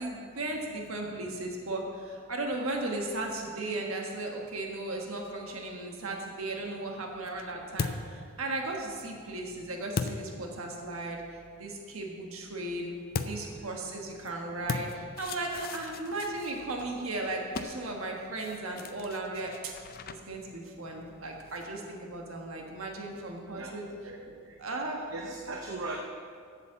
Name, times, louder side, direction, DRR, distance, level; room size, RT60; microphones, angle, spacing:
voice 1, 0.0-11.2 11.6-12.9 13.2-19.7 20.1-23.9 24.6-25.0, right 2 dB, 80° right, 1 dB, 1.3 m, -36 dB
sound 1, 6.6-11.1 13.1-21.9, left 4 dB, 45° left, 0.5 m, -40 dB
voice 2, 13.5-14.0 14.7-14.8 23.6-24.2 25.1-26.0, right 2 dB, 65° right, 1 dB, 0.8 m, -40 dB
8.2 x 7.4 x 7.4 m, 2.2 s
head